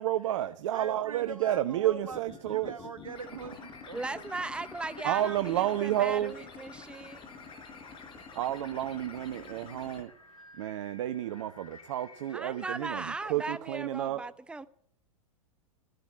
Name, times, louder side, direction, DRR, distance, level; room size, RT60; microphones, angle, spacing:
voice 1, 0.0-2.7 5.0-6.3 8.4-10.1 10.6-13.0 13.3-14.2, right 13 dB, 60° right, 0.9 m, -30 dB
voice 2, 0.7-2.2 2.5-4.5 5.2-5.3, right 4 dB, 85° right, 1.5 m, -42 dB
sound 1, 2.0-10.0, left 5 dB, 30° left, 4.4 m, -48 dB
sound 2, 3.5-13.1, left 3 dB, 90° left, 2.6 m, -56 dB
voice 3, 3.9-7.2 12.3-14.7, right 3 dB, 5° right, 0.8 m, -38 dB
14.5 x 11.5 x 8.6 m
hypercardioid pair, 100°, 17 cm